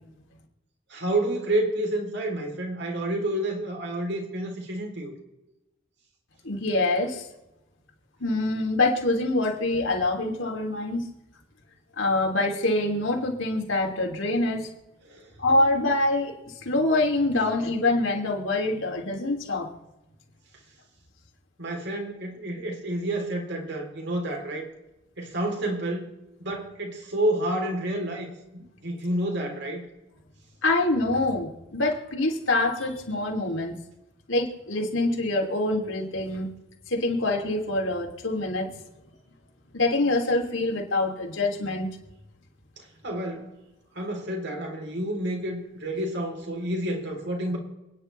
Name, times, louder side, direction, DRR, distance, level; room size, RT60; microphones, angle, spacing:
voice 1, 0.9-5.1 15.1-15.3 21.6-24.7 25.2-26.1 26.4-29.9 42.8-43.5 43.9-47.6, right 1 dB, 65° right, 1 dB, 3.6 m, -29 dB
voice 2, 6.4-7.3 8.2-11.1 12.0-14.7 15.4-16.3 16.6-19.7 30.6-33.8 34.3-36.5 36.9-38.7 39.7-41.9, left 2 dB, 80° left, 1 dB, 3.2 m, -25 dB
28.5 x 10.0 x 3.4 m, 0.96 s
head